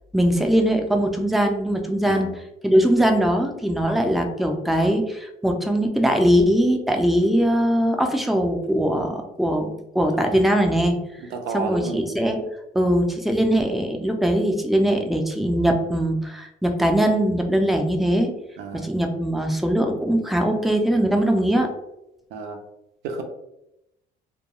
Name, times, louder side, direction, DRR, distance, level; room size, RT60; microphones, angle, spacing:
voice 1, 0.1-2.3 2.6-11.0 11.5-12.5 12.7-18.3 18.7-21.7, equal, ahead, 3 dB, 0.4 m, -21 dB
voice 2, 11.3-12.0 18.6-18.9 22.3-22.6 23.0-23.2, right 4 dB, 90° right, 4 dB, 0.5 m, -31 dB
2.3 x 2.2 x 2.8 m, 0.86 s
cardioid pair, 110°, 17 cm